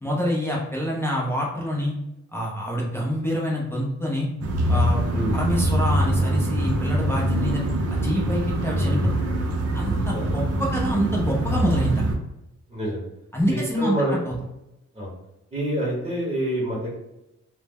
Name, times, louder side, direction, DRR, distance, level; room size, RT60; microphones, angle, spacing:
voice 1, 0.0-1.9 2.3-4.3 4.7-5.0 5.3-7.6 7.9-9.1 9.7-12.0 13.3-14.3, equal, 10° left, -3 dB, 0.4 m, -26 dB
sound 1, 4.4-12.2, right 1 dB, 55° right, 0.5 m, -24 dB
voice 2, 7.3-7.8 10.1-10.3 12.7-13.0 13.5-14.2 14.9-15.1 15.5-16.9, right 1 dB, 25° right, -6 dB, 0.8 m, -27 dB
2.0 x 2.0 x 3.4 m, 0.91 s
cardioid pair, 130°, 29 cm